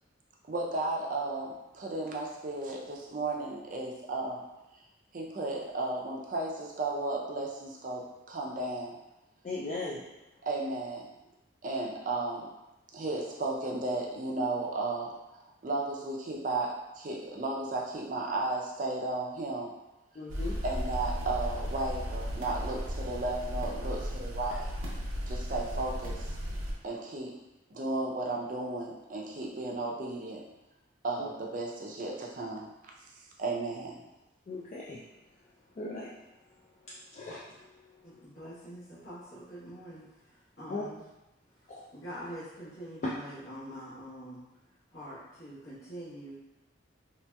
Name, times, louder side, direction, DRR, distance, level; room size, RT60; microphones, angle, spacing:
voice 1, 0.5-4.4 5.1-9.0 10.4-11.1 11.6-12.5 12.9-19.7 20.6-24.7 25.3-26.3 26.8-27.3 27.7-30.4 31.0-32.7 33.4-34.0, right 2 dB, 40° right, -1 dB, 0.4 m, -34 dB
voice 2, 9.4-10.0 20.2-20.6 31.2-31.3 34.5-35.0 35.8-36.1 37.1-37.4 40.7-40.8 41.7-41.8, left 3 dB, 40° left, -6 dB, 0.3 m, -37 dB
sound 1, 20.3-26.7, equal, 85° right, 0.6 m, -35 dB
voice 3, 38.0-41.1 41.5-44.4 44.9-46.4, equal, 55° left, -13 dB, 1.0 m, -45 dB
3.0 x 2.8 x 2.2 m, 0.98 s
head